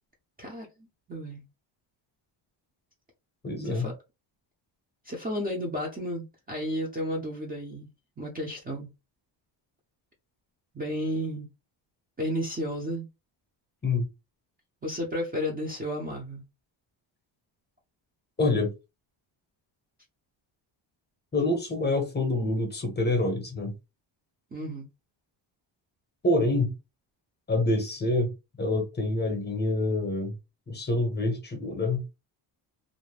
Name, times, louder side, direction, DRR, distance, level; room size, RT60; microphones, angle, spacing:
voice 1, 0.4-1.5 3.6-3.9 5.0-7.9 8.2-8.9 10.7-11.5 12.2-13.1 14.8-16.4 24.5-24.8, equal, 20° right, 0.6 m, -32 dB
voice 2, 3.4-3.9 13.8-14.1 18.4-18.7 21.3-23.7 26.2-26.7 27.5-28.3 28.6-30.3 30.7-32.0, left 2 dB, 20° left, 0.8 m, -26 dB
2.5 x 2.1 x 3.2 m
cardioid pair, 150°, 48 cm